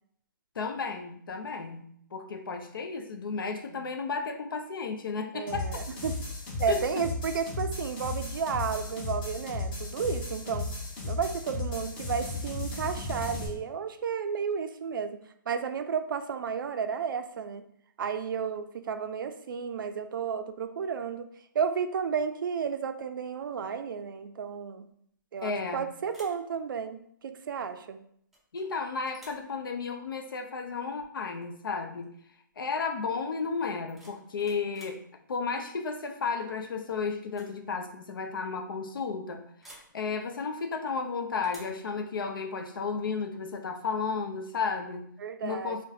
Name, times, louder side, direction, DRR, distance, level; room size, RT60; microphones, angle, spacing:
voice 1, 0.6-1.8 2.1-5.7 6.7-7.0 25.4-25.9 28.5-32.1 32.6-35.0 35.3-45.0 45.4-45.8, left 5 dB, 90° left, 6 dB, 0.5 m, -33 dB
voice 2, 5.3-6.1 6.6-10.7 11.0-15.2 15.5-17.6 18.0-21.3 21.5-24.9 25.3-28.0 45.2-45.8, right 6 dB, 75° right, 9 dB, 0.4 m, -32 dB
sound 1, 5.5-13.5, left 3 dB, 30° left, 0.9 m, -35 dB
sound 2, 25.4-25.7 26.1-26.5 28.3-28.7 29.1-29.5 31.3-31.5 31.8-32.2 33.6-35.1 36.5-36.8 37.2-37.6 37.8-37.9 39.6-40.0 41.4-41.8, right 1 dB, ahead, 0.4 m, -53 dB
2.6 x 2.1 x 3.9 m, 0.68 s
hypercardioid pair, 160°, 11 cm